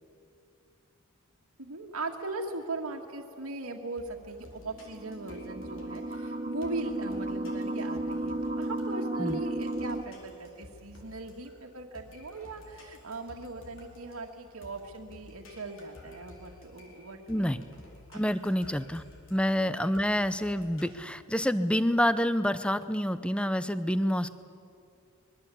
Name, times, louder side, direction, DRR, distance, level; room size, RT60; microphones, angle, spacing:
voice 1, 1.6-17.7 18.1-18.2, right 2 dB, 75° right, 1 dB, 1.9 m, -39 dB
sound 1, 4.0-20.9, left 2 dB, 60° left, 4.7 m, -53 dB
sound 2, 4.7-10.0, right 2 dB, 30° right, 1.0 m, -34 dB
voice 2, 17.3-17.6 18.1-19.0 19.3-24.3, equal, 5° left, 13 dB, 0.7 m, -27 dB
24.5 x 21.5 x 8.5 m, 2.5 s
head